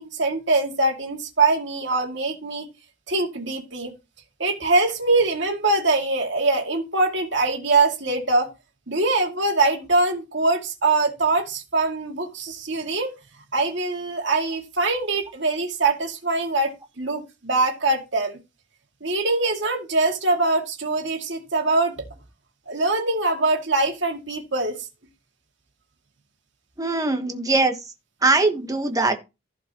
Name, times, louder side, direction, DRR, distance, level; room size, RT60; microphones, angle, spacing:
voice 1, 0.0-2.7 3.1-3.9 4.4-8.5 8.9-13.1 13.5-18.4 19.0-22.0 22.7-24.8, right 3 dB, 60° right, 2.3 m, -23 dB
voice 2, 26.8-27.9 28.2-29.1, right 3 dB, 15° right, 1.2 m, -21 dB
15.0 x 5.1 x 3.0 m
head